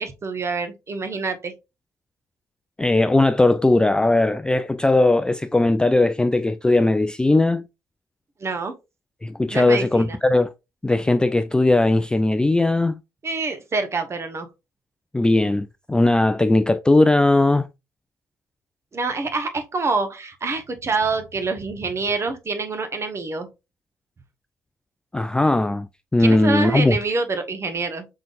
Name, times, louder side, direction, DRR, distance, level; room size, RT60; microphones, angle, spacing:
voice 1, 0.0-1.5 8.4-8.7 9.5-10.2 13.2-14.5 18.9-23.5 26.2-28.1, right 3 dB, 30° right, 1.0 m, -26 dB
voice 2, 2.8-7.7 9.2-10.5 10.8-13.0 15.1-17.7 25.1-27.0, left 2 dB, 10° left, 0.3 m, -18 dB
5.5 x 3.7 x 2.5 m
figure-of-eight pair, 50°, 9 cm